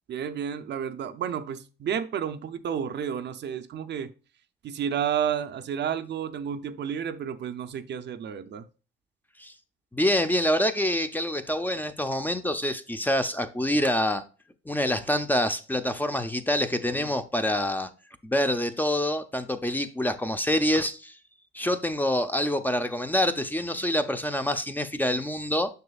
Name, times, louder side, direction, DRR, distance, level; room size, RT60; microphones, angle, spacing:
voice 1, 0.1-4.1 4.6-8.7, right 8 dB, 60° right, 0.7 m, -31 dB
voice 2, 9.9-14.2 14.7-17.9 18.2-21.2 21.5-25.7, left 1 dB, 10° left, 0.7 m, -26 dB
6.6 x 6.0 x 2.4 m
cardioid pair, 90°, 20 cm